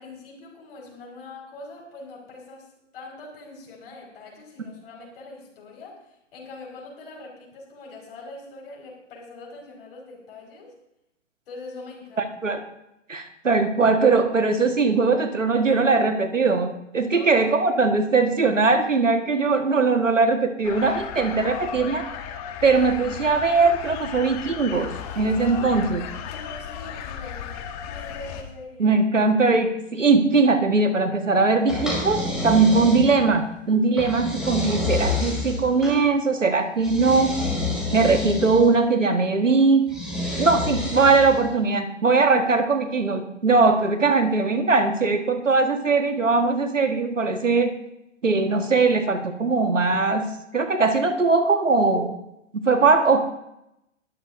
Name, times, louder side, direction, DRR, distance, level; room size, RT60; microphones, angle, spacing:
voice 1, 0.0-10.8 11.5-12.4 17.0-17.4 25.4-28.9, left 3 dB, 50° left, -1 dB, 5.2 m, -42 dB
voice 2, 13.1-22.1 22.6-26.0 28.8-37.4 37.9-39.9 40.4-47.7 48.2-50.3 50.5-52.1 52.5-53.2, right 4 dB, 80° right, 7 dB, 1.6 m, -20 dB
sound 1, 20.6-28.4, left 8 dB, 30° left, 1.5 m, -35 dB
sound 2, 31.7-33.4 34.0-36.0 36.8-38.7 39.9-41.5, left 2 dB, ahead, 5.2 m, -28 dB
20.0 x 13.0 x 2.7 m, 0.85 s
figure-of-eight pair, 120°, 37 cm